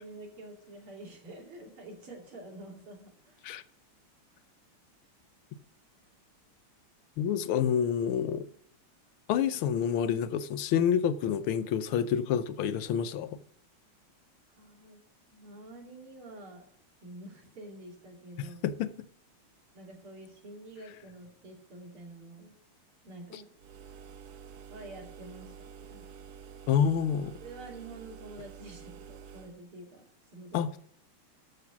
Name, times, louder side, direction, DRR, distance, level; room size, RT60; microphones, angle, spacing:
voice 1, 0.0-3.4 14.6-15.0 15.3-16.7 17.0-18.6 19.7-22.5 23.0-23.5 24.7-26.2 27.4-30.0 30.3-30.8, right 2 dB, 80° right, 3.6 m, -48 dB
voice 2, 7.2-8.4 9.3-13.4 18.4-18.9 26.7-27.4 30.5-30.8, left 8 dB, 85° left, 1.6 m, -28 dB
sound 1, 23.6-29.6, right 7 dB, 65° right, 1.0 m, -49 dB
13.5 x 6.0 x 5.9 m
omnidirectional pair, 2.3 m